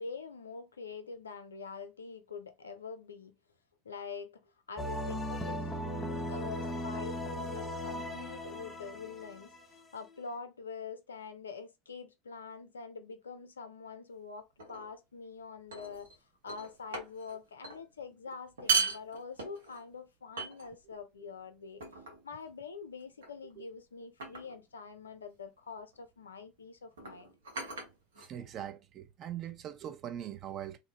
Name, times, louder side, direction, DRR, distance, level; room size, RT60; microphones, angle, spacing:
voice 1, 0.0-3.4 3.8-16.2 16.4-21.8 22.2-27.3, left 5 dB, 85° left, 0.4 m, -45 dB
sound 1, 4.8-10.2, equal, 20° left, 0.6 m, -38 dB
sound 2, 14.6-14.9 15.7-16.2 16.5-17.3 17.6-17.8 18.5-19.8 20.4-21.0 21.8-22.3 23.2-23.5 24.2-24.6 25.8-26.0 26.9-28.6, right 5 dB, 80° right, 0.9 m, -36 dB
voice 2, 28.2-30.8, right 10 dB, 45° right, 0.4 m, -41 dB
2.6 x 2.0 x 2.8 m
hypercardioid pair, 80°, 0 cm